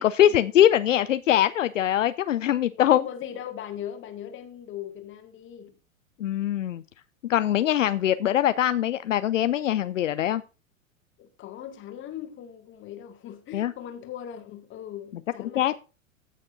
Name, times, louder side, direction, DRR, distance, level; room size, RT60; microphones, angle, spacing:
voice 1, 0.0-3.0 6.2-6.8 7.2-10.4 13.5-13.7 15.5-15.8, left 11 dB, 65° left, 0.6 m, -22 dB
voice 2, 2.7-5.8 11.2-15.8, left 10 dB, 30° left, 1.8 m, -39 dB
15.5 x 6.5 x 2.6 m
figure-of-eight pair, 95°, 41 cm